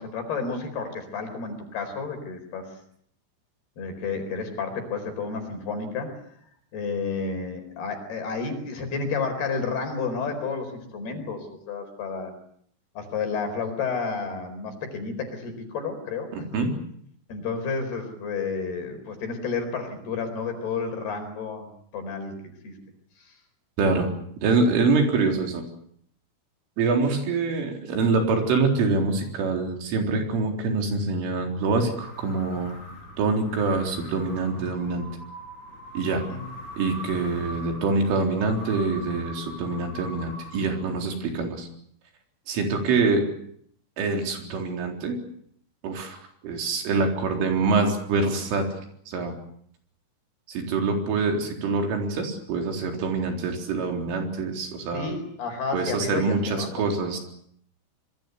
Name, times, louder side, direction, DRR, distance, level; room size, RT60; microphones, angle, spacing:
voice 1, 0.0-2.7 3.8-6.2 6.7-12.3 13.0-16.3 17.3-22.3 22.6-22.8 23.3-23.4 36.1-36.4 54.9-56.9, left 4 dB, 55° left, 6 dB, 6.2 m, -31 dB
voice 2, 16.3-16.7 23.8-24.1 24.4-25.6 26.8-32.8 33.2-35.1 35.9-36.2 36.8-41.7 42.5-43.3 44.0-45.2 45.8-46.2 46.4-48.7 49.1-49.3 50.5-55.1 55.7-57.2, right 3 dB, 80° right, 3 dB, 6.5 m, -25 dB
sound 1, 31.4-41.1, left 1 dB, 15° left, 6.5 m, -42 dB
25.5 x 23.0 x 8.2 m, 0.66 s
omnidirectional pair, 5.6 m